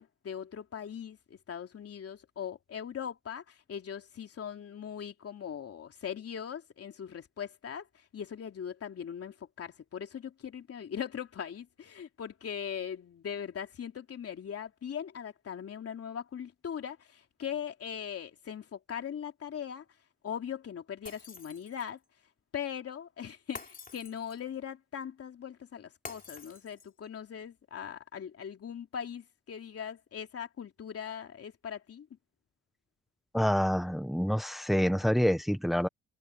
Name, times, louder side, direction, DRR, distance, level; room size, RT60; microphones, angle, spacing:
voice 1, 0.0-19.8 20.2-22.0 22.5-32.1, left 8 dB, 50° left, 3.1 m, -40 dB
Shatter, 21.1-22.0 23.6-24.5 26.1-27.1, left 4 dB, 30° left, 3.6 m, -47 dB
voice 2, 33.3-35.9, equal, ahead, 1.3 m, -27 dB
cardioid pair, 90°, 30 cm